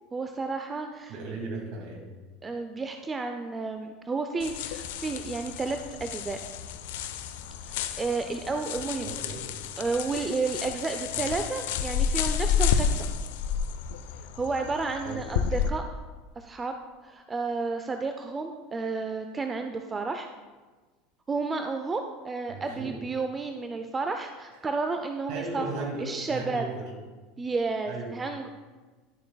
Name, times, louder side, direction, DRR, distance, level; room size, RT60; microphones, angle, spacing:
voice 1, 0.1-1.1 2.4-6.4 7.7-9.1 9.8-13.1 14.3-15.8 16.4-16.7 17.0-20.3 21.3-26.6 27.4-28.5, right 4 dB, 25° right, 6 dB, 0.5 m, -31 dB
voice 2, 1.1-2.0 9.0-9.4 11.1-11.3 15.0-15.2 22.5-22.9 25.3-26.9 27.8-28.1, right 3 dB, 60° right, 1 dB, 2.2 m, -36 dB
sound 1, 4.4-15.7, left 7 dB, 75° left, 0.5 m, -31 dB
11.0 x 7.0 x 2.3 m, 1.3 s
hypercardioid pair, 85°, 0 cm